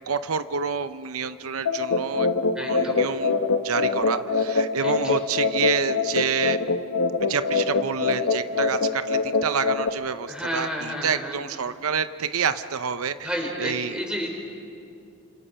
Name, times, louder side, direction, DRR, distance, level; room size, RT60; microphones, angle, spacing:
voice 1, 0.1-2.3 2.6-3.4 3.6-6.6 7.2-14.0, right 6 dB, 90° right, 11 dB, 0.7 m, -28 dB
sound 1, 1.6-9.9, left 4 dB, 75° left, 1.1 m, -24 dB
voice 2, 2.5-3.0 4.8-5.2 10.3-11.4 13.2-14.3, equal, 5° right, 1 dB, 4.6 m, -31 dB
29.0 x 27.0 x 5.7 m, 2.5 s
head